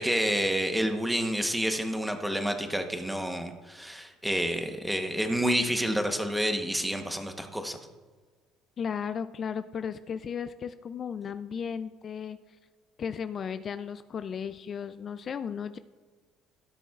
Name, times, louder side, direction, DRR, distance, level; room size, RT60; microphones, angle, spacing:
voice 1, 0.0-7.8, equal, 5° right, 5 dB, 1.0 m, -29 dB
voice 2, 8.8-12.4 13.0-15.8, left 7 dB, 40° left, 11 dB, 0.3 m, -35 dB
16.5 x 6.9 x 2.4 m, 1.4 s
cardioid pair, 120°, 0 cm